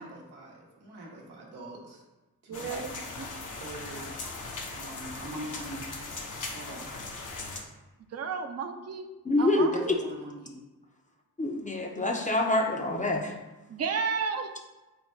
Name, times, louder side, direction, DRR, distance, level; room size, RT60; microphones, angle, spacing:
voice 1, 0.0-2.0 2.4-3.1 3.6-4.0 4.7-5.8 6.5-6.9 9.6-10.6, right 2 dB, 90° right, -3 dB, 0.9 m, -43 dB
sound 1, 2.5-7.6, left 3 dB, 50° left, 0.8 m, -39 dB
voice 2, 2.5-3.3 8.1-9.1 9.4-9.9 13.7-14.5, right 5 dB, 40° right, 6 dB, 0.5 m, -32 dB
voice 3, 9.2-9.7 11.4-13.3, left 2 dB, 20° left, 2 dB, 0.6 m, -26 dB
3.6 x 2.2 x 4.4 m, 1.1 s
supercardioid pair, 45°, 39 cm